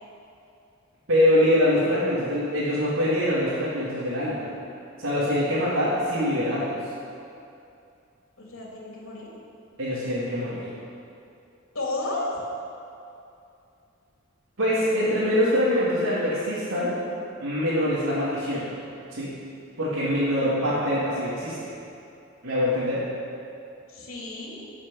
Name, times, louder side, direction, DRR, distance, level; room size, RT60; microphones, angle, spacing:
voice 1, 1.1-4.4 5.0-6.7 9.8-10.6 14.6-16.9 17.4-18.6 19.1-19.3 19.8-21.5 22.4-23.0, left 1 dB, 85° right, -11 dB, 3.3 m, -24 dB
voice 2, 8.4-9.3 11.7-12.3 23.9-24.6, left 2 dB, 80° left, -4 dB, 3.6 m, -32 dB
17.0 x 7.4 x 6.6 m, 2.6 s
head